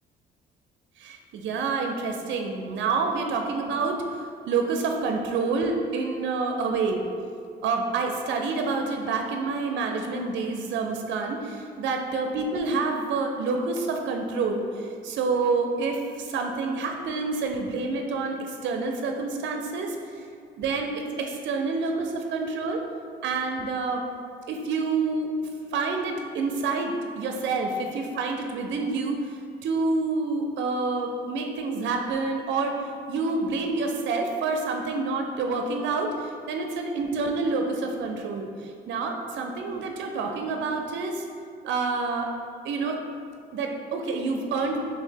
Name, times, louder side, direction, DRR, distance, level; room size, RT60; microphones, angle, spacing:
voice 1, 1.0-7.0 7.6-20.2 20.6-22.8 23.2-24.0 24.5-25.3 25.7-41.2 41.6-42.3 42.6-43.0 43.5-44.8, right 4 dB, 65° right, 3 dB, 0.4 m, -28 dB
3.0 x 2.8 x 4.4 m, 2.3 s
cardioid pair, 90°, 20 cm